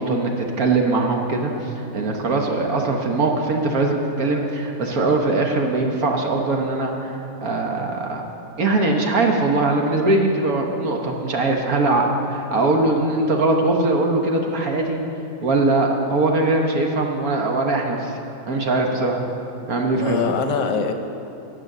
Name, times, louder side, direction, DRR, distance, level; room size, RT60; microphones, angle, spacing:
voice 1, 0.0-8.2 8.6-15.0 15.4-18.2 18.5-19.2 19.7-20.4, right 2 dB, 55° right, 2 dB, 1.4 m, -21 dB
voice 2, 19.6-20.9, left 6 dB, 65° left, 5 dB, 1.3 m, -24 dB
17.0 x 6.5 x 6.7 m, 2.9 s
omnidirectional pair, 2.1 m